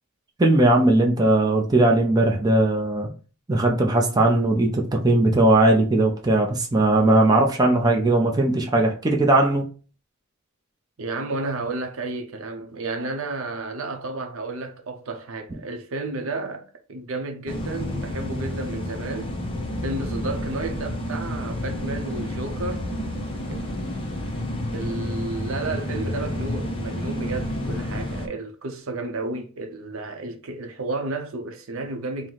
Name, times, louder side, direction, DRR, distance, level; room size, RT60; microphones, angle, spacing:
voice 1, 0.4-3.1 3.5-9.7, right 2 dB, 15° right, 0.5 m, -19 dB
voice 2, 11.0-19.3 19.8-22.9 24.7-32.3, right 2 dB, 65° right, 0.7 m, -32 dB
sound 1, 17.5-28.3, left 1 dB, 25° left, 0.7 m, -30 dB
4.5 x 2.1 x 3.9 m
head